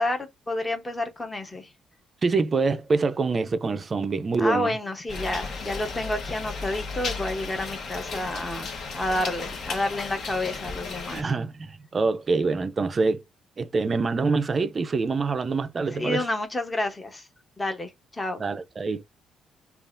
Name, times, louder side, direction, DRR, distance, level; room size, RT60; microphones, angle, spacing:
voice 1, 0.0-1.7 4.4-11.3 15.9-17.2 17.6-18.4, left 1 dB, 15° left, 0.9 m, -30 dB
voice 2, 2.2-4.8 11.1-13.2 13.6-16.3 18.4-19.0, right 4 dB, 30° right, 0.5 m, -25 dB
sound 1, 5.1-11.2, left 4 dB, 50° left, 1.1 m, -34 dB
5.4 x 2.4 x 2.5 m
cardioid pair, 155°, 0 cm